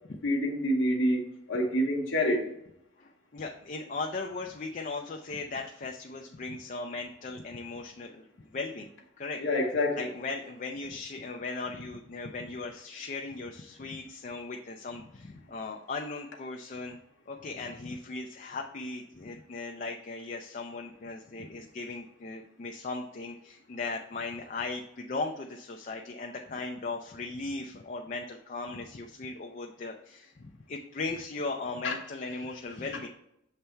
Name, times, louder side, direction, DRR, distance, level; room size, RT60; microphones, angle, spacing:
voice 1, 0.2-1.2 1.5-2.5 9.4-10.1 31.8-31.9, left 1 dB, 75° left, -1 dB, 1.0 m, -27 dB
voice 2, 3.0-8.3 8.5-8.9 9.2-9.4 9.9-17.0 17.3-33.1, left 3 dB, 40° left, 2 dB, 0.4 m, -38 dB
6.8 x 3.3 x 4.4 m, 0.77 s
head